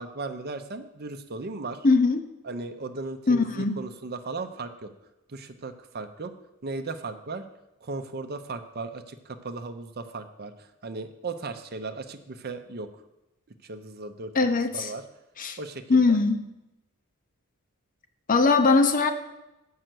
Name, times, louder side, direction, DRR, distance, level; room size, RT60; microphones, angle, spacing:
voice 1, 0.0-1.9 2.4-4.9 5.3-6.3 6.6-7.5 7.8-12.9 13.6-15.0 15.6-16.2, right 3 dB, 45° right, 8 dB, 0.6 m, -36 dB
voice 2, 1.8-2.2 3.3-3.8 14.3-14.9 15.4-15.6 15.9-16.4 18.3-19.1, left 3 dB, 40° left, 8 dB, 0.7 m, -21 dB
7.7 x 5.6 x 7.6 m, 0.94 s
head